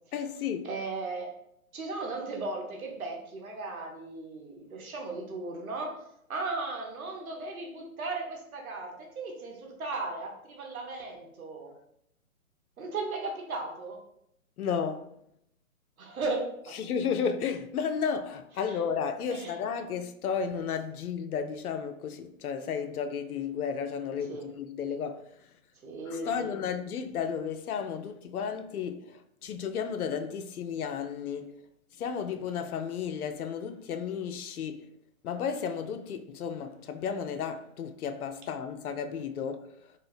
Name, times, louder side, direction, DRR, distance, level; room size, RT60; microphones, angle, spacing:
voice 1, 0.1-0.7 14.6-15.1 16.7-25.2 26.1-31.5 32.0-34.9 35.2-39.7, left 7 dB, 90° left, 0.5 m, -33 dB
voice 2, 0.6-1.3 1.7-6.0 6.3-11.7 12.8-14.0 16.0-16.9 18.7-18.8 19.3-19.6 24.3-24.5 25.8-26.5, right 3 dB, 75° right, 1.0 m, -36 dB
2.7 x 2.4 x 3.2 m
hypercardioid pair, 150°, 43 cm